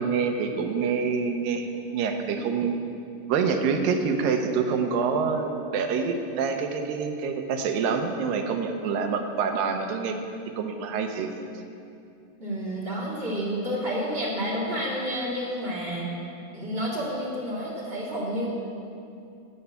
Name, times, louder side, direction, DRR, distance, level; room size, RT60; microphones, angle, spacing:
voice 1, 0.0-2.8 3.3-10.2 10.6-11.3, right 5 dB, 85° right, 4 dB, 2.6 m, -26 dB
voice 2, 12.4-16.1 16.5-18.5, equal, 20° right, -6 dB, 2.0 m, -30 dB
13.0 x 5.6 x 8.3 m, 2.6 s
omnidirectional pair, 4.0 m